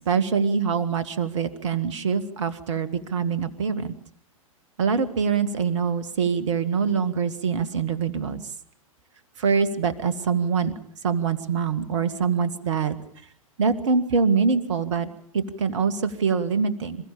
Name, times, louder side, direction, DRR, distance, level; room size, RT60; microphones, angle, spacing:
voice 1, 0.1-3.9 4.8-8.4 9.4-10.7 11.0-13.0 13.6-17.0, right 5 dB, 55° right, 13 dB, 2.0 m, -24 dB
27.5 x 15.0 x 8.6 m, 0.63 s
figure-of-eight pair, 100°, 18 cm